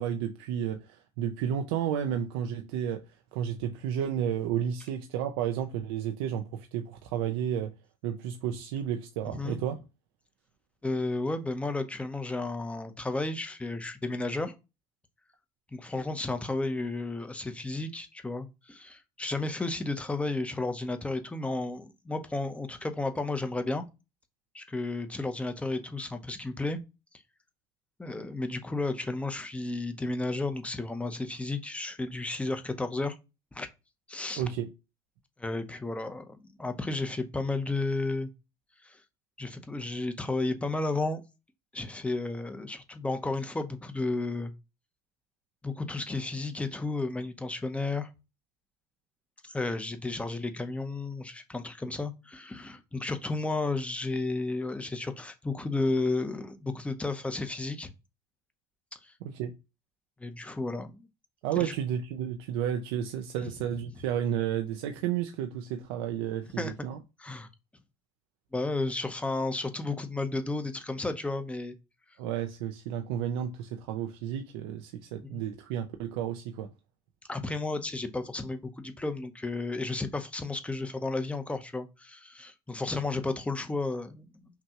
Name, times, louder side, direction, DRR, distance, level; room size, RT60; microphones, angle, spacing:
voice 1, 0.0-7.7 8.0-9.8 34.4-34.7 59.2-59.5 61.4-67.0 72.2-76.7, right 9 dB, 90° right, 0.6 m, -32 dB
voice 2, 9.2-9.6 10.8-14.5 15.7-23.9 24.5-26.8 28.0-33.2 33.5-33.7 34.1-34.4 35.4-38.3 38.8-39.0 39.4-41.2 41.7-44.5 45.6-48.1 49.4-57.9 59.0-59.1 60.2-61.1 61.6-61.7 66.6-66.7 67.2-67.5 68.5-71.7 75.3-75.4 77.3-84.5, left 2 dB, 10° left, 0.7 m, -33 dB
5.8 x 2.3 x 2.9 m
supercardioid pair, 100°, 13 cm